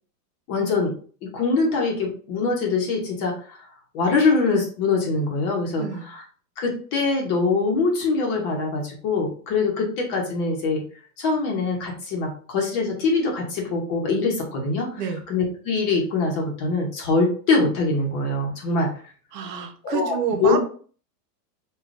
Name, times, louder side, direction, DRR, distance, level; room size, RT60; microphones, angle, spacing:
voice 1, 0.5-0.9 1.2-3.7 3.9-6.2 6.6-10.8 11.2-15.0 15.3-18.9 19.8-20.6, left 3 dB, 30° left, 0 dB, 0.8 m, -23 dB
voice 2, 19.3-20.6, right 7 dB, 75° right, 5 dB, 0.9 m, -28 dB
4.9 x 2.4 x 2.5 m, 0.43 s
supercardioid pair, 160°, 49 cm